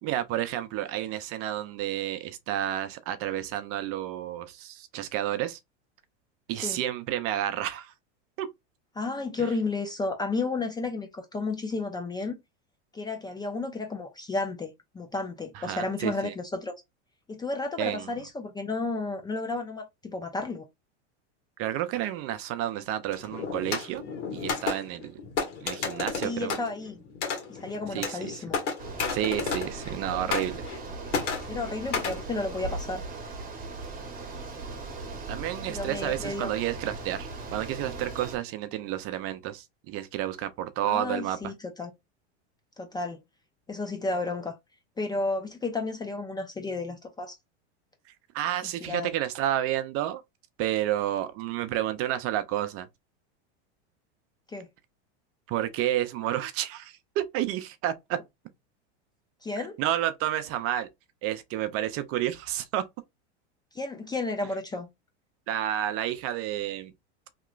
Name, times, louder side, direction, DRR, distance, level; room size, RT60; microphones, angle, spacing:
voice 1, 0.0-5.6 6.5-7.9 8.4-8.5 15.5-16.3 17.8-18.1 21.6-24.0 24.3-25.2 25.6-26.6 27.9-28.3 29.1-30.6 35.3-41.5 48.3-50.2 50.6-52.9 55.5-58.2 59.6-60.9 61.2-62.8 65.5-66.9, right 12 dB, 40° right, 0.5 m, -30 dB
voice 2, 9.0-12.4 12.9-16.7 17.3-20.7 26.2-27.0 27.5-28.6 30.1-30.3 31.5-33.0 35.7-36.5 40.9-41.9 42.8-43.2 43.7-44.5 45.0-47.4 48.6-49.1 54.5-54.7 59.4-59.8 63.7-64.9, left 3 dB, 10° left, 0.4 m, -32 dB
sound 1, 23.1-30.0 30.3-30.8 31.1-32.2, left 5 dB, 85° left, 1.6 m, -32 dB
Bicycle, 28.8-38.4, right 3 dB, 25° right, 1.0 m, -38 dB
2.9 x 2.9 x 2.4 m
supercardioid pair, 120°, 35 cm